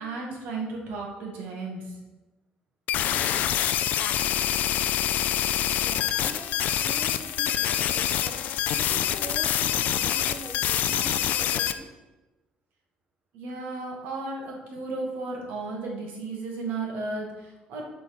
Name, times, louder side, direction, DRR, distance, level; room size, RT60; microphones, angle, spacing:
voice 1, 0.0-1.9 13.3-17.8, right 3 dB, 80° right, -1 dB, 2.3 m, -34 dB
sound 1, 2.9-11.7, left 11 dB, 65° left, 0.5 m, -26 dB
voice 2, 5.8-8.4 8.7-11.9, right 2 dB, 30° right, 1 dB, 1.1 m, -43 dB
8.2 x 4.4 x 7.1 m, 1.1 s
cardioid pair, 130°, 3 cm